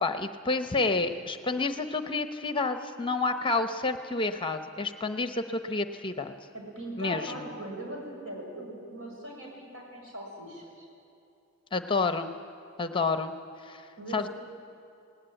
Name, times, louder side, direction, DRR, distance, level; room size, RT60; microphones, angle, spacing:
voice 1, 0.0-6.3 7.0-7.5 11.7-12.3 12.8-13.3 13.6-13.8 14.1-14.3, left 3 dB, 20° left, 9 dB, 0.7 m, -29 dB
voice 2, 6.5-10.9 14.0-14.3, right 1 dB, 65° right, -1 dB, 6.4 m, -40 dB
19.0 x 18.5 x 9.0 m, 2.7 s
head